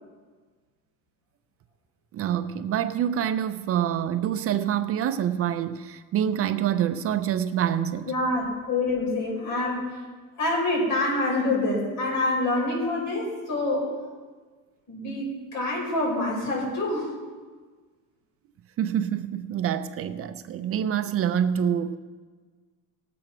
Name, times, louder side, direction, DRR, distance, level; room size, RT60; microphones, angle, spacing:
voice 1, 2.1-8.1 18.8-22.0, right 9 dB, 40° right, 11 dB, 0.4 m, -26 dB
voice 2, 8.1-10.0 10.4-13.9 14.9-17.1, left 2 dB, 55° left, -2 dB, 5.3 m, -26 dB
18.0 x 7.8 x 6.1 m, 1.5 s
cardioid pair, 165°, 35 cm